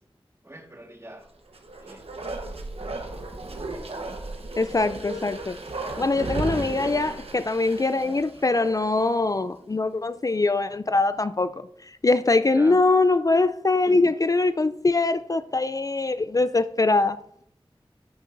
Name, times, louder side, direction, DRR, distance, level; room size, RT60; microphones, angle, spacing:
voice 1, 0.4-1.3 1.8-2.3 6.6-6.9 8.3-8.5 12.5-12.8, right 1 dB, 25° right, 1.5 m, -45 dB
Bark, 1.5-9.1 9.4-9.5, right 2 dB, 90° right, 1.1 m, -35 dB
voice 2, 4.6-5.6 6.0-17.2, left 3 dB, 35° left, 0.3 m, -23 dB
10.0 x 9.9 x 2.6 m
wide cardioid pair, 45°, 10 cm